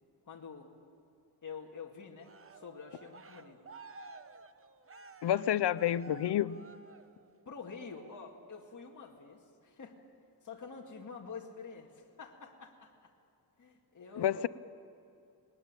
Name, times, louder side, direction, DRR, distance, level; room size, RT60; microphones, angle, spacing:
voice 1, 0.3-0.7 1.4-3.6 7.5-10.0 10.4-13.1 13.6-14.4, left 5 dB, 45° left, 0 dB, 2.1 m, -47 dB
Cheering, 2.2-7.4 7.9-8.3, right 4 dB, 35° right, 1.0 m, -53 dB
voice 2, 5.2-6.6 14.2-14.5, left 11 dB, 80° left, 17 dB, 0.7 m, -29 dB
21.0 x 19.0 x 8.9 m, 2.6 s
wide cardioid pair, 120°, 41 cm